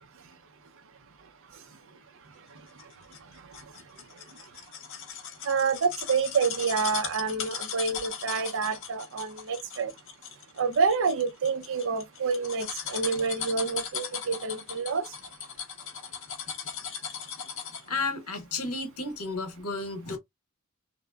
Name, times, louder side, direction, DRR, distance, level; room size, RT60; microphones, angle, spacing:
sound 1, 2.8-18.0 18.3-18.4, left 7 dB, 60° left, 0.6 m, -38 dB
voice 1, 5.5-9.9 10.6-15.0, right 5 dB, 60° right, 0.5 m, -28 dB
voice 2, 17.9-20.2, left 3 dB, 85° left, 0.9 m, -32 dB
2.8 x 2.0 x 2.3 m
head